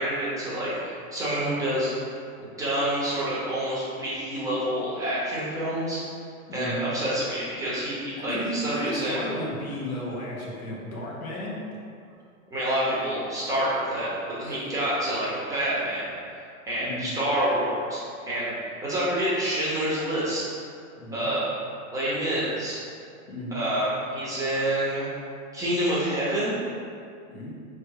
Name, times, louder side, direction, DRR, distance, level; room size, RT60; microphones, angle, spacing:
voice 1, 0.0-1.9 2.4-6.0 6.5-9.2 12.5-18.0 18.3-18.5 18.8-20.5 21.1-21.5 21.9-22.8 23.5-25.1 25.5-26.6, right 1 dB, 10° right, -9 dB, 0.9 m, -27 dB
voice 2, 6.5-6.9 8.2-11.6 14.5-14.7 16.7-17.2 21.0-21.3 23.3-23.6 27.3-27.5, equal, 80° left, -4 dB, 1.3 m, -34 dB
3.4 x 3.0 x 4.7 m, 2.4 s
hypercardioid pair, 135°, 43 cm